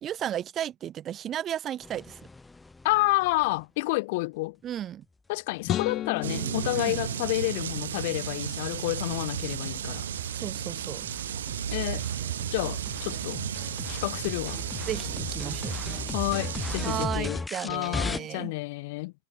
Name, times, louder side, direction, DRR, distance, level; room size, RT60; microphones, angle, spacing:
voice 1, 0.0-2.2 4.6-5.0 6.7-7.0 10.3-11.0 14.9-15.8 16.8-18.5, right 10 dB, 35° right, 1.5 m, -34 dB
sound 1, 1.8-3.6 6.5-18.2, left 3 dB, 10° left, 5.2 m, -38 dB
voice 2, 2.8-4.6 5.3-10.1 11.7-12.0 12.5-13.4 13.9-14.6 16.1-19.1, left 23 dB, 60° left, 3.5 m, -29 dB
sound 2, 5.6-8.0, left 11 dB, 35° left, 2.3 m, -34 dB
sound 3, 6.2-17.1, right 10 dB, 75° right, 1.9 m, -34 dB
hypercardioid pair, 100°, 0 cm